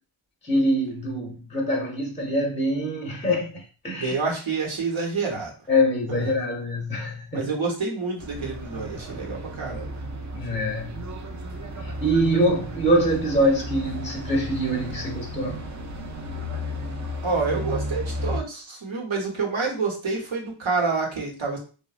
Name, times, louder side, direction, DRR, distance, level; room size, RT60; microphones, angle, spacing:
voice 1, 0.4-4.2 5.7-7.5 10.3-11.2 11.8-15.6, equal, 15° left, 0.6 m, -24 dB
voice 2, 3.9-5.5 6.1-6.2 7.3-10.0 17.2-21.6, right 4 dB, 70° right, 1.0 m, -28 dB
sound 1, 8.2-18.4, equal, 35° right, 0.5 m, -34 dB
2.9 x 2.4 x 2.4 m
wide cardioid pair, 75°, 49 cm